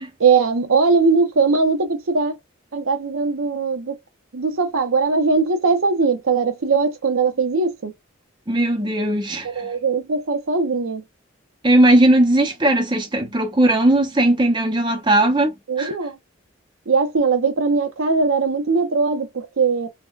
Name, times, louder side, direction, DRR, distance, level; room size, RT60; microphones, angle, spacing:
voice 1, 0.2-2.3 2.7-4.0 4.3-7.9 9.4-11.0 15.7-16.1 16.9-19.9, right 4 dB, 85° right, 0.7 m, -20 dB
voice 2, 8.5-9.7 11.6-15.9, right 1 dB, 20° right, 0.5 m, -18 dB
3.5 x 2.1 x 2.3 m
head